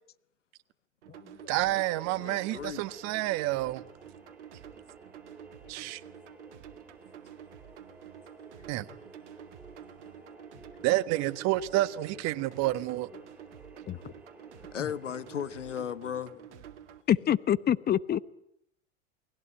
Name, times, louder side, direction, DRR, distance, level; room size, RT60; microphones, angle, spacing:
sound 1, 1.0-17.0, right 10 dB, 70° right, 2.1 m, -50 dB
voice 1, 1.5-3.8 5.7-6.0 8.7-8.8 10.8-13.1, right 16 dB, 45° right, 1.5 m, -29 dB
sound 2, 1.9-15.8, right 1 dB, 5° right, 3.3 m, -54 dB
voice 2, 2.2-2.8 8.6-8.7 10.0-10.1 13.9-14.0 14.7-16.3, left 8 dB, 85° left, 1.3 m, -36 dB
voice 3, 17.1-18.2, left 10 dB, 25° left, 1.0 m, -25 dB
29.0 x 20.5 x 9.2 m
hypercardioid pair, 90°, 36 cm